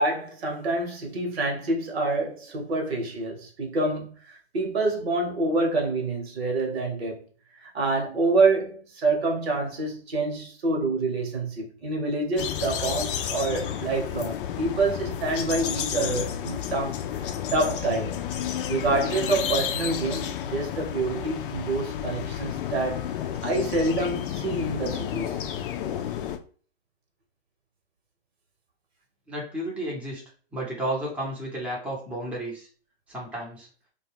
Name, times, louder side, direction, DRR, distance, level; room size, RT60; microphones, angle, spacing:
voice 1, 0.0-7.2 7.6-16.9 17.2-18.2 18.7-23.0 23.4-25.4, right 2 dB, 70° right, 1.1 m, -27 dB
sound 1, 12.4-26.4, left 9 dB, 55° left, 0.4 m, -31 dB
voice 2, 29.3-30.2 30.5-32.7 33.1-33.7, right 1 dB, 5° right, 0.7 m, -32 dB
2.2 x 2.2 x 3.3 m
hypercardioid pair, 115°, 32 cm